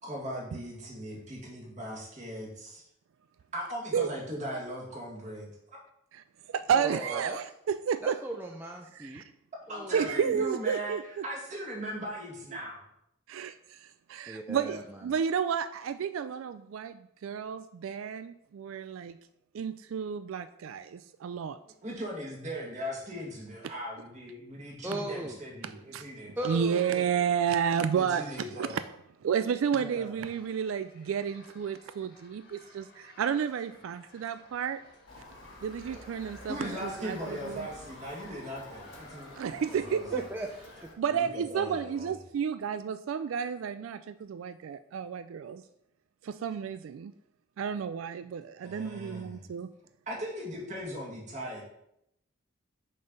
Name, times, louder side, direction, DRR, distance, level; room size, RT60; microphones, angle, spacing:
voice 1, 0.0-2.8 3.5-5.5 9.7-11.0 11.2-12.8 21.8-26.5 27.9-28.7 29.8-30.2 35.9-36.0 36.5-40.3 41.1-42.1 48.6-49.4 50.1-51.6, equal, 35° right, -3 dB, 2.0 m, -39 dB
voice 2, 6.1-8.2 8.9-9.2 9.9-11.2 13.3-19.2 19.5-21.6 25.6-26.0 26.4-28.8 29.2-34.8 35.6-37.7 39.3-40.2 41.0-45.6 46.2-47.1 47.6-49.7, right 7 dB, 85° right, 12 dB, 0.3 m, -31 dB
voice 3, 6.7-7.4 8.0-9.2 9.7-10.2 14.3-14.8 24.8-25.4 26.4-27.0 40.1-40.5 40.8-40.9, right 1 dB, 10° right, 1 dB, 0.4 m, -37 dB
sound 1, 30.2-40.8, left 2 dB, 55° left, 1.6 m, -57 dB
Motor vehicle (road) / Siren, 35.1-40.9, left 1 dB, 75° left, 1.4 m, -49 dB
6.4 x 4.5 x 5.2 m, 0.78 s
head